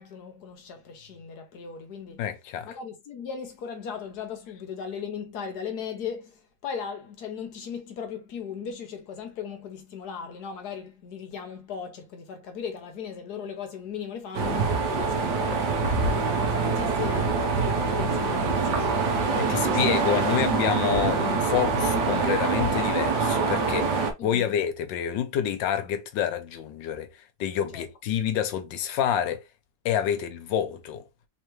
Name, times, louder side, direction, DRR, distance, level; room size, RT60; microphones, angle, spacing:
voice 1, 0.0-2.2 2.6-20.2 24.2-24.5 27.7-27.8, left 7 dB, 65° left, 1.3 m, -38 dB
voice 2, 2.2-2.7 19.4-29.4 29.8-31.0, left 9 dB, 80° left, 1.4 m, -28 dB
sound 1, 14.3-24.1, right 4 dB, 65° right, 1.4 m, -25 dB
3.6 x 3.3 x 3.0 m
omnidirectional pair, 2.0 m